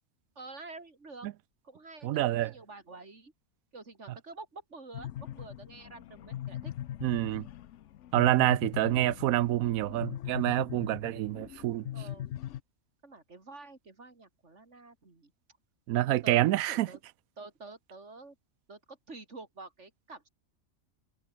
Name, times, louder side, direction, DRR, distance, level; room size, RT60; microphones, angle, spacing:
voice 1, 0.4-1.3 1.6-3.3 3.7-6.7 11.9-12.3 13.0-15.3 16.0-16.4 16.7-17.0 17.4-18.4 18.7-20.3, right 3 dB, 55° right, 3.8 m, -48 dB
voice 2, 2.0-2.5 7.0-7.4 8.1-11.9 15.9-16.9, right 15 dB, 85° right, 1.0 m, -27 dB
sound 1, 4.9-12.6, left 12 dB, 65° left, 0.9 m, -41 dB
omnidirectional pair, 1.4 m